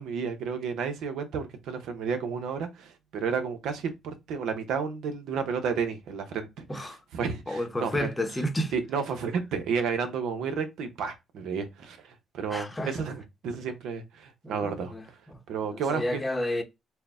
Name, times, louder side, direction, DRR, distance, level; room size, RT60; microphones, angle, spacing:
voice 1, 0.0-8.1 8.7-14.9 15.5-16.2, right 6 dB, 80° right, 0.8 m, -32 dB
voice 2, 7.5-8.7 12.5-12.9 14.4-15.0 15.7-16.6, left 1 dB, 15° left, 0.8 m, -31 dB
4.5 x 2.2 x 3.5 m
cardioid pair, 90°, 0 cm